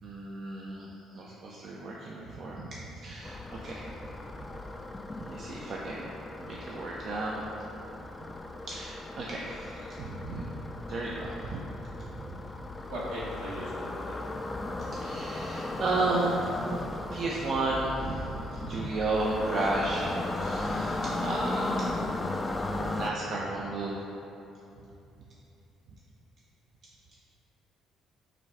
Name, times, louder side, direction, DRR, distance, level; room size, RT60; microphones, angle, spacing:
voice 1, 0.0-3.9 5.2-6.1 6.4-7.4 8.7-10.5 10.9-11.7 12.0-12.4 15.0-21.9 22.9-24.0 24.8-24.9, right 2 dB, 55° right, -4 dB, 0.4 m, -33 dB
sound 1, 3.2-23.1, left 2 dB, 25° left, 0.3 m, -36 dB
voice 2, 12.9-14.2, right 1 dB, 75° right, -7 dB, 0.9 m, -38 dB
5.7 x 2.3 x 3.4 m, 2.8 s
figure-of-eight pair, 45°, 0 cm